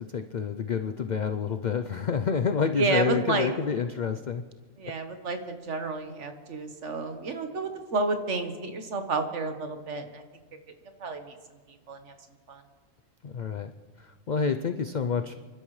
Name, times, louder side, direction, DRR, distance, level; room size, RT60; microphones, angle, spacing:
voice 1, 0.0-4.4 13.2-13.7 14.0-15.3, left 6 dB, 85° left, 8 dB, 0.4 m, -28 dB
voice 2, 2.7-3.5 4.8-10.2 11.0-11.3 11.9-12.1 12.5-12.6, right 3 dB, 60° right, 6 dB, 1.5 m, -30 dB
30.0 x 12.0 x 3.2 m, 1.5 s
omnidirectional pair, 1.4 m